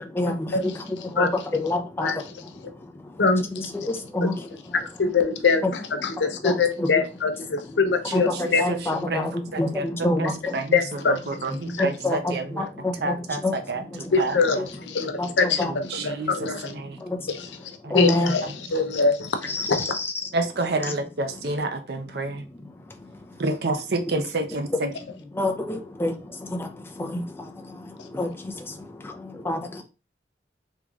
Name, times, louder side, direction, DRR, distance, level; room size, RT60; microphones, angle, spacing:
voice 1, 0.0-4.9 5.1-5.7 6.0-7.0 7.4-7.8 8.1-10.7 11.5-14.1 14.5-14.7 15.0-18.7 19.4-20.3 20.6-21.5 22.1-23.4 24.1-24.2 24.6-29.8, left 2 dB, 15° left, 0.5 m, -30 dB
voice 2, 3.2-3.7 5.0-5.6 6.0-8.6 10.7-11.2 11.7-11.8 14.1-15.6 16.0-16.7 17.9-18.4 18.7-19.4 19.7-19.8, left 4 dB, 90° left, 0.6 m, -23 dB
voice 3, 8.4-9.8 10.2-10.8 11.1-12.6 13.0-13.4 13.7-13.8 14.2-14.4 15.6-17.0 17.8-18.0 20.3-22.4 23.4-24.9, right 2 dB, 65° right, 0.6 m, -29 dB
3.6 x 2.9 x 2.4 m
head